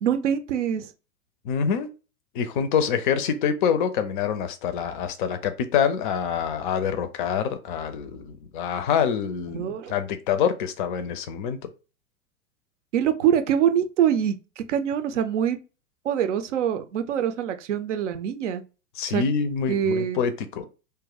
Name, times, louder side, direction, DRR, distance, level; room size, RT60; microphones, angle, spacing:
voice 1, 0.0-0.9 9.5-9.9 12.9-15.6 16.0-18.6 19.1-19.2 19.7-20.2, right 9 dB, 55° right, 0.6 m, -24 dB
voice 2, 1.4-1.9 2.3-11.6 19.0-20.6, left 7 dB, 35° left, 0.5 m, -26 dB
2.6 x 2.2 x 3.8 m
figure-of-eight pair, 100°, 44 cm